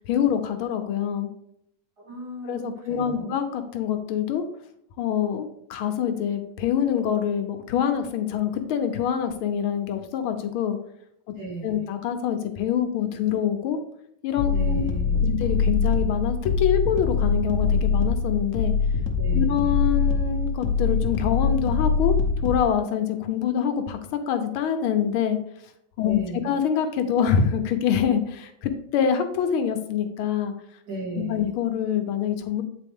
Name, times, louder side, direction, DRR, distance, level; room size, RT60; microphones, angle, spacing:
voice 1, 0.0-1.3 2.4-4.4 5.0-10.8 11.6-13.8 14.2-14.9 15.2-18.7 19.3-22.2 22.4-24.0 24.3-25.4 26.0-26.2 26.4-30.5 31.3-32.6, left 8 dB, 75° left, 7 dB, 1.6 m, -25 dB
voice 2, 2.0-3.4 11.4-11.8 14.5-15.4 19.2-19.7 26.0-26.5 30.9-31.5, right 2 dB, 45° right, -4 dB, 2.7 m, -36 dB
sound 1, 14.4-22.7, left 5 dB, 55° left, 1.0 m, -23 dB
8.4 x 4.1 x 3.6 m, 0.75 s
omnidirectional pair, 2.4 m